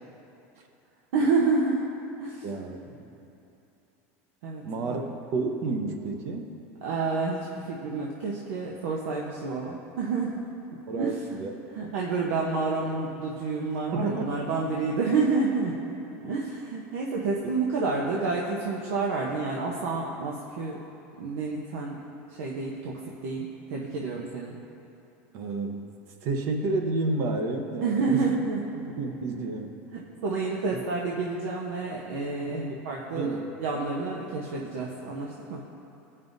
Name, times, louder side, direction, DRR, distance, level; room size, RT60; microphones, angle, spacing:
voice 1, 1.1-1.9 2.2-2.4 4.4-5.0 6.8-10.4 11.0-11.2 11.7-15.7 16.2-20.8 21.2-22.0 22.3-24.6 27.8-28.6 29.9-35.6, right 4 dB, 85° right, -3 dB, 0.9 m, -29 dB
voice 2, 2.4-3.1 4.6-5.0 5.3-6.5 10.9-11.5 13.9-14.3 25.3-25.9 26.2-28.2 28.9-29.7 32.4-33.5, right 3 dB, 40° right, 4 dB, 0.8 m, -30 dB
16.0 x 5.5 x 2.7 m, 2.8 s
supercardioid pair, 170°, 7 cm